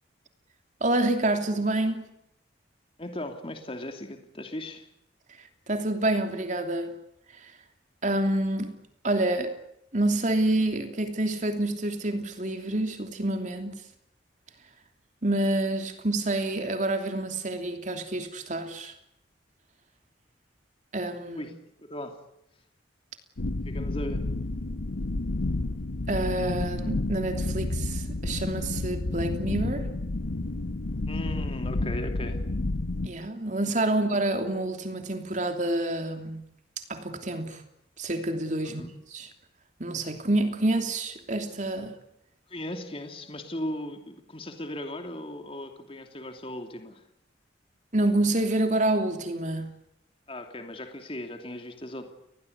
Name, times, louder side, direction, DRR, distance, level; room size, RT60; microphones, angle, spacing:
voice 1, 0.8-2.0 5.7-6.9 7.4-7.5 8.0-8.7 9.0-9.6 9.9-13.8 15.2-18.9 20.9-21.5 26.1-29.9 33.0-36.4 36.9-37.6 38.0-38.8 39.1-39.3 39.8-42.0 47.9-49.7, right 1 dB, 40° right, 3.0 m, -27 dB
voice 2, 3.0-4.9 21.3-22.2 23.7-24.2 31.1-32.4 38.6-38.9 42.5-47.0 50.3-52.1, left 1 dB, 30° left, 2.9 m, -37 dB
sound 1, 23.4-33.1, left 2 dB, 75° left, 1.0 m, -30 dB
29.0 x 21.0 x 8.2 m
head